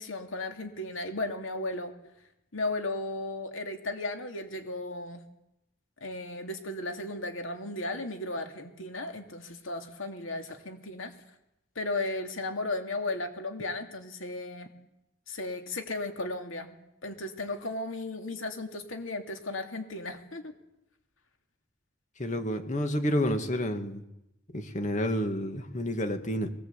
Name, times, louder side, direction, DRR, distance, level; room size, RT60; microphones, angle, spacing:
voice 1, 0.0-1.9 2.5-5.2 6.0-11.1 11.7-14.7 15.3-16.7 17.0-20.5, left 2 dB, 75° left, 5 dB, 2.9 m, -35 dB
voice 2, 22.2-24.0 24.5-26.5, equal, 35° left, 7 dB, 2.2 m, -29 dB
23.0 x 19.0 x 8.4 m, 0.85 s
head